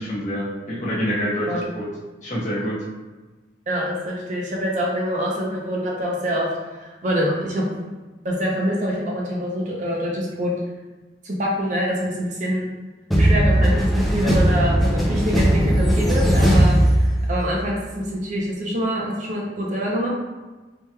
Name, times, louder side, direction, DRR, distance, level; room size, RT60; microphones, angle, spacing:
voice 1, 0.0-1.9 2.2-2.8, equal, 45° left, -7 dB, 1.0 m, -26 dB
voice 2, 3.7-6.5 6.8-7.6 8.2-10.5 11.2-12.7 13.2-20.1, equal, 45° right, -3 dB, 0.6 m, -25 dB
sound 1, 13.1-17.6, equal, ahead, 0.4 m, -18 dB
3.4 x 2.9 x 2.2 m, 1.2 s
head